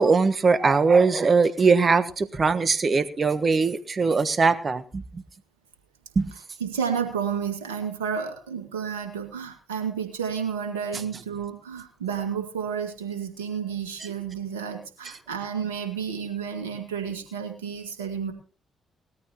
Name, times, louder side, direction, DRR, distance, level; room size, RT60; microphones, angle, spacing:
voice 1, 0.0-5.2 6.1-6.3, right 4 dB, 40° right, 1.4 m, -21 dB
voice 2, 6.6-18.3, right 7 dB, 85° right, 2.1 m, -31 dB
19.5 x 13.5 x 3.0 m
hypercardioid pair, 45°, 0 cm